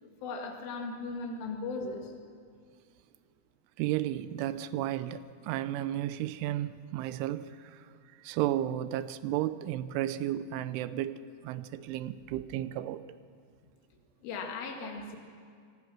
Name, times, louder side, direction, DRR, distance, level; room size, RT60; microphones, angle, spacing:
voice 1, 0.0-2.1 14.2-15.2, left 3 dB, 80° left, 2 dB, 4.7 m, -37 dB
voice 2, 3.8-7.9 8.2-13.2, right 13 dB, 85° right, 14 dB, 3.1 m, -33 dB
25.5 x 20.0 x 6.2 m, 2.2 s
omnidirectional pair, 5.5 m